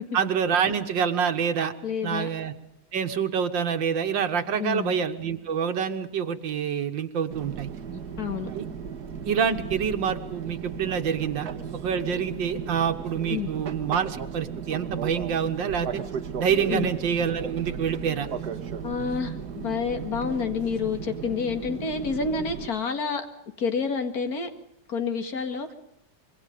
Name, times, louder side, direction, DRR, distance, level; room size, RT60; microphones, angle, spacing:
voice 1, 0.1-1.7 2.0-2.5 2.9-7.7 8.5-8.7 9.2-16.0 16.4-18.3, right 7 dB, 85° right, 7 dB, 2.1 m, -27 dB
voice 2, 1.8-2.3 4.6-5.0 7.9-8.5 13.3-13.5 16.7-16.9 18.8-23.3 23.6-24.5 24.9-25.7, left 5 dB, 55° left, 7 dB, 2.4 m, -29 dB
Fixed-wing aircraft airplane, 7.3-22.7, right 7 dB, 60° right, 1.8 m, -35 dB
26.0 x 22.5 x 5.2 m, 0.82 s
omnidirectional pair, 2.0 m